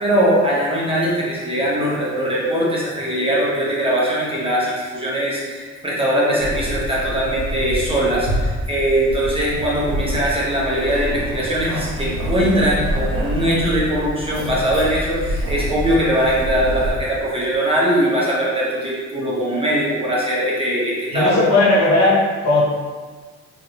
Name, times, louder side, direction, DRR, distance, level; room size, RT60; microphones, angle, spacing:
voice 1, 0.0-21.4, equal, 20° right, -7 dB, 0.9 m, -21 dB
Keys jangling, 6.4-16.9, equal, 65° right, 1.1 m, -26 dB
voice 2, 21.1-22.6, left 2 dB, 60° left, -7 dB, 1.3 m, -16 dB
3.1 x 2.5 x 2.9 m, 1.4 s
cardioid pair, 90°, 30 cm